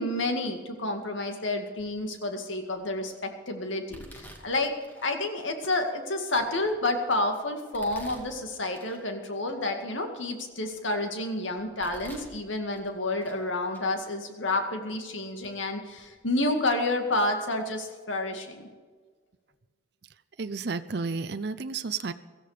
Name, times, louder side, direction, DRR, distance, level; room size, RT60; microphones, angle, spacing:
voice 1, 0.0-4.7 5.0-18.7, left 2 dB, 80° left, 5 dB, 2.1 m, -30 dB
Domestic sounds home sounds, 1.8-2.2 2.7-3.2 3.9-5.1 5.6-5.7 6.3-7.1 7.7-9.1 9.4-9.6 10.1-11.1 11.6-12.3 12.7-13.4 13.7-13.9 14.7-14.8 15.4-15.5 15.9-16.1, equal, 10° left, 2.2 m, -50 dB
voice 2, 20.4-22.1, right 4 dB, 55° right, 11 dB, 0.6 m, -32 dB
17.0 x 14.0 x 5.0 m, 1.5 s
head